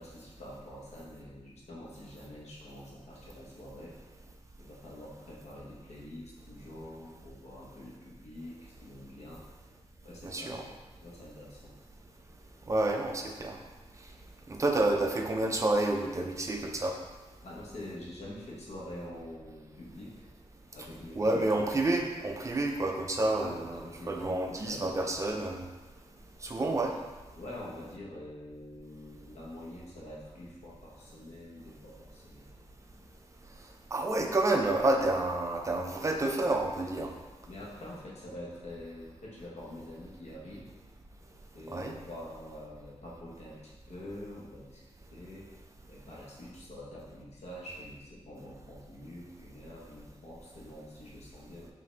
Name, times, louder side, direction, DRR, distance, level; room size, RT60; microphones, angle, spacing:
voice 1, 0.0-3.9 4.6-9.4 10.0-10.6 11.0-11.7 17.4-20.2 20.7-21.8 23.4-25.6 26.4-27.0 27.3-32.5 37.5-40.7 41.5-44.8 45.1-45.5 45.9-51.7, left 1 dB, 65° left, -5 dB, 1.1 m, -46 dB
voice 2, 10.2-10.6 12.7-13.6 14.5-17.0 21.2-25.7 26.4-26.9 33.9-37.1 41.7-41.9, right 2 dB, 25° right, 2 dB, 0.5 m, -29 dB
5.1 x 2.7 x 3.3 m, 1.2 s
wide cardioid pair, 125°, 12 cm